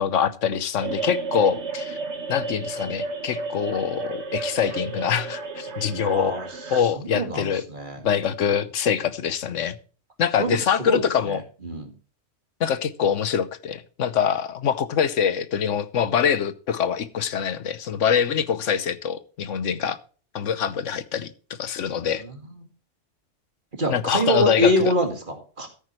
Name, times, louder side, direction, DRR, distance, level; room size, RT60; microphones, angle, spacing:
voice 1, 0.0-2.0 2.3-6.3 6.7-7.6 8.0-9.8 10.2-11.4 12.6-20.0 20.3-21.3 21.6-22.2 23.9-24.7, left 8 dB, 80° left, 1.2 m, -24 dB
sound 1, 0.8-6.8, right 3 dB, 65° right, 1.7 m, -32 dB
voice 2, 5.9-6.4 7.0-8.0 10.4-11.0 11.6-11.9 22.0-22.3 23.8-25.7, equal, 40° right, 2.3 m, -25 dB
14.0 x 8.8 x 3.1 m
omnidirectional pair, 1.3 m